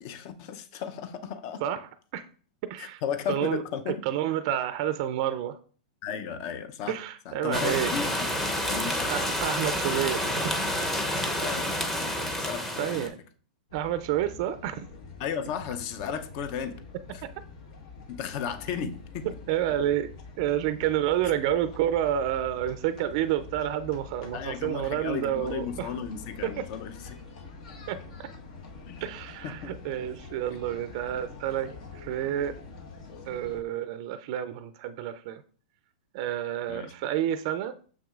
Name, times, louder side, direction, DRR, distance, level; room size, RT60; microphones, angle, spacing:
voice 1, 0.0-1.6 2.8-4.0 6.0-6.9 7.3-8.3 8.7-9.1 11.4-11.8 12.2-13.1 15.2-16.7 17.1-17.2 18.1-19.3 24.3-26.9 28.9-29.1 29.4-29.7 36.7-36.9, left 7 dB, 45° left, 11 dB, 0.6 m, -34 dB
voice 2, 1.6-2.3 2.7-3.0 3.3-5.6 6.9-7.9 9.1-10.7 12.8-13.2 13.7-14.9 17.2-17.3 19.5-20.1 20.4-25.9 26.4-26.7 27.9-28.0 29.0-32.6 33.3-35.4 36.1-37.7, right 11 dB, 50° right, 11 dB, 0.4 m, -29 dB
sound 1, 7.5-13.1, left 1 dB, 10° left, 0.7 m, -29 dB
sound 2, 13.7-33.6, left 4 dB, 65° left, 1.3 m, -45 dB
6.6 x 6.0 x 2.4 m, 0.43 s
hypercardioid pair, 145°, 4 cm